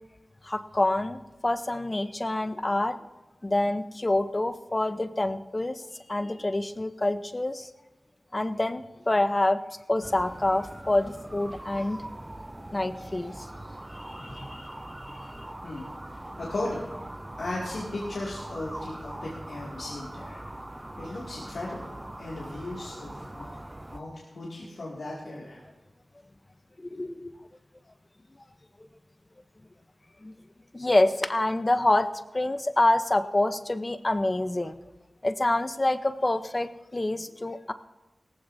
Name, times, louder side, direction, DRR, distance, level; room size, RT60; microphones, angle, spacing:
voice 1, 0.4-2.9 3.4-7.7 8.3-9.6 9.9-12.0 12.7-13.5 13.9-14.7 15.0-15.5 26.8-27.5 30.2-30.3 30.7-32.1 32.3-34.8 35.2-37.7, left 2 dB, 35° left, 11 dB, 0.8 m, -27 dB
sound 1, 10.0-24.0, right 1 dB, 25° right, 0.7 m, -41 dB
voice 2, 16.3-16.8 17.4-20.4 21.0-23.5 23.9-25.6, left 2 dB, 85° left, -6 dB, 2.4 m, -36 dB
17.5 x 14.5 x 2.7 m, 1.1 s
cardioid pair, 45°, 0 cm